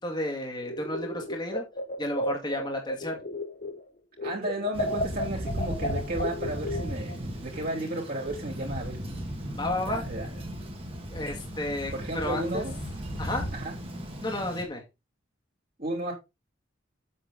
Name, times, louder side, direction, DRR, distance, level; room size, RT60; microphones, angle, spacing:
voice 1, 0.0-1.6 2.0-3.2 9.5-10.0 11.1-12.6 13.2-13.5 14.2-14.8, left 1 dB, 20° left, 2.3 m, -32 dB
sound 1, 0.6-3.9 4.2-7.2, left 1 dB, 40° left, 1.0 m, -33 dB
voice 2, 4.2-9.0 9.8-10.3 11.9-12.8 13.5-13.7 15.8-16.1, right 2 dB, 45° right, 3.8 m, -33 dB
Thunder, 4.7-14.6, equal, 30° right, 2.4 m, -36 dB
8.4 x 7.9 x 3.8 m
head